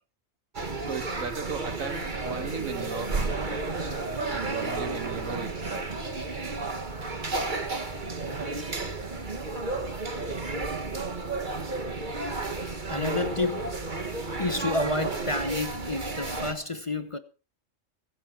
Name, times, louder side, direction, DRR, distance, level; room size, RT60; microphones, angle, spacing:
sound 1, 0.5-16.5, right 3 dB, 40° right, 1.7 m, -32 dB
voice 1, 0.8-3.7 4.3-6.0, right 5 dB, 85° right, 1.9 m, -37 dB
voice 2, 12.1-13.8 14.4-17.2, left 2 dB, 25° left, 0.9 m, -30 dB
22.5 x 8.7 x 4.5 m
omnidirectional pair, 1.3 m